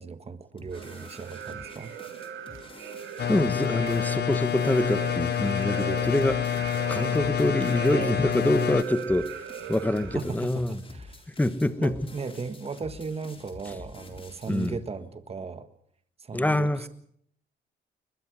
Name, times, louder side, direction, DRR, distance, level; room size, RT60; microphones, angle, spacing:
voice 1, 0.0-1.9 10.1-11.2 11.8-15.7 16.2-16.9, right 4 dB, 30° right, 1.6 m, -37 dB
sound 1, 0.6-14.8, left 3 dB, 25° left, 3.9 m, -48 dB
sound 2, 0.7-10.2, right 8 dB, 80° right, 3.3 m, -39 dB
sound 3, 3.2-8.8, left 9 dB, 55° left, 1.1 m, -28 dB
voice 2, 3.3-6.5 6.9-9.4 9.7-10.8 11.4-11.9 14.5-14.7 16.3-16.9, left 1 dB, 10° left, 1.4 m, -25 dB
21.5 x 21.0 x 6.3 m
cardioid pair, 90°, 20 cm